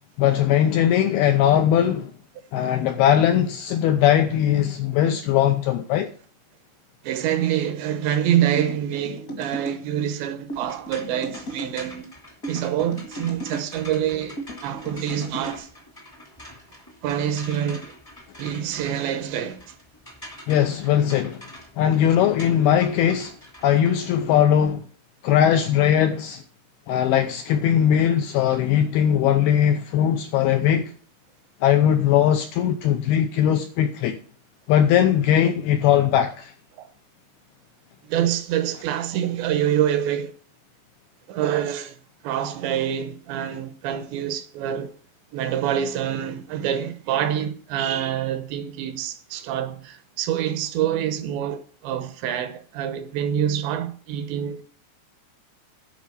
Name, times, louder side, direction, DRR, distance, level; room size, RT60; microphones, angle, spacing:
voice 1, 0.2-2.1 2.5-6.1 20.5-21.4 21.8-23.3 23.6-24.8 25.2-26.4 26.9-30.9 31.6-34.2 34.7-36.5, left 10 dB, 80° left, 2.3 m, -20 dB
voice 2, 7.0-12.1 12.5-15.7 17.0-17.9 18.4-19.7 36.8-36.9 38.1-40.3 41.3-42.0 42.2-44.9 45.3-54.6, right 10 dB, 75° right, 3.1 m, -26 dB
sound 1, 8.6-9.8 10.5-11.7 12.4-13.7 14.4-15.6, right 1 dB, 40° left, 1.2 m, -35 dB
sound 2, 10.5-24.7, left 1 dB, 10° left, 0.9 m, -45 dB
10.5 x 5.0 x 8.2 m
omnidirectional pair, 5.3 m